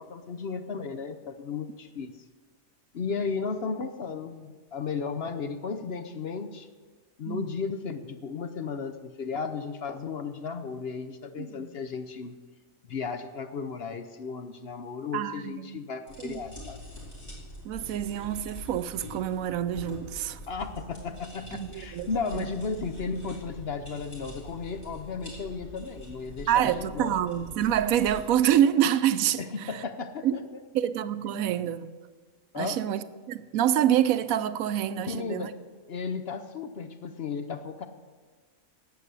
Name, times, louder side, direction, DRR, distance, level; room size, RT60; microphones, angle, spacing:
voice 1, 0.0-2.1 2.9-6.7 7.2-12.4 12.9-16.8 20.5-27.2 29.4-30.6 32.5-32.8 35.0-35.6 35.9-37.9, left 5 dB, 55° left, 0.9 m, -34 dB
voice 2, 11.4-11.7 15.1-15.8 16.2-16.3 17.6-20.4 21.5-22.1 22.3-22.5 26.5-29.8 30.2-30.3 30.7-31.9 32.5-35.5, right 10 dB, 80° right, 1.0 m, -27 dB
sound 1, 16.1-28.2, left 1 dB, 35° left, 4.4 m, -44 dB
11.5 x 8.1 x 8.2 m
omnidirectional pair, 1.5 m